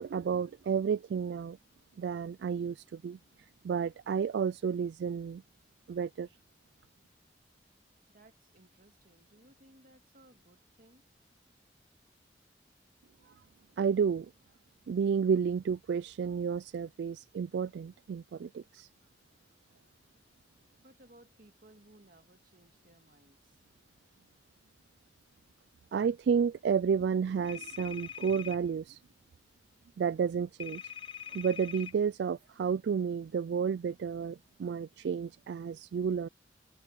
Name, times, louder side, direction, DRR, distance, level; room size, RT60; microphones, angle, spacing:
voice 1, 0.0-1.6 2.0-3.2 3.6-5.4 5.9-6.3 13.8-14.3 14.9-18.9 25.9-29.0 30.0-30.8 31.3-36.3, right 6 dB, 70° right, 0.3 m, -31 dB
voice 2, 8.1-11.0 20.8-23.6, right 1 dB, 50° right, 2.1 m, -61 dB
sound 1, 27.5-28.6 30.6-31.9, left 8 dB, 30° left, 0.6 m, -43 dB
head